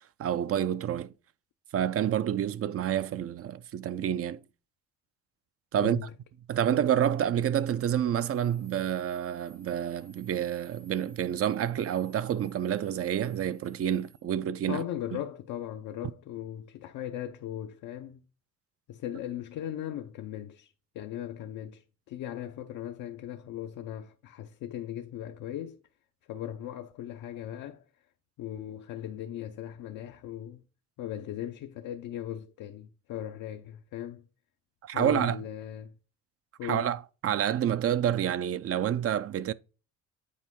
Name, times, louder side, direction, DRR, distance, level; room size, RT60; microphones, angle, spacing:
voice 1, 0.2-1.1 1.7-4.4 5.7-6.0 6.5-14.8 34.8-35.4 36.6-39.5, right 10 dB, 50° right, 0.5 m, -28 dB
voice 2, 5.8-6.1 14.7-18.2 18.9-25.8 26.3-27.8 28.4-30.6 31.0-34.3 34.9-36.0 36.6-36.9, left 11 dB, 80° left, 0.7 m, -38 dB
sound 1, 8.2-14.2, right 2 dB, 75° right, 1.9 m, -61 dB
8.6 x 4.5 x 3.6 m
cardioid pair, 90°, 30 cm